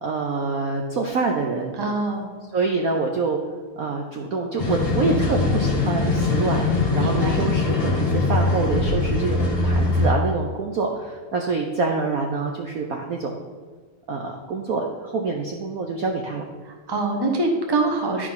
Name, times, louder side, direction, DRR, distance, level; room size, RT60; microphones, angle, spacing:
voice 1, 0.0-1.8 2.5-3.4 3.8-6.7 6.9-13.4 14.1-16.4, right 4 dB, 60° right, 1 dB, 0.9 m, -26 dB
voice 2, 1.7-2.3 7.0-7.4 16.6-18.3, right 2 dB, 15° right, 2 dB, 0.8 m, -24 dB
sound 1, 4.6-10.1, left 3 dB, 30° left, 1.4 m, -22 dB
11.0 x 4.7 x 5.7 m, 1.4 s
omnidirectional pair, 2.3 m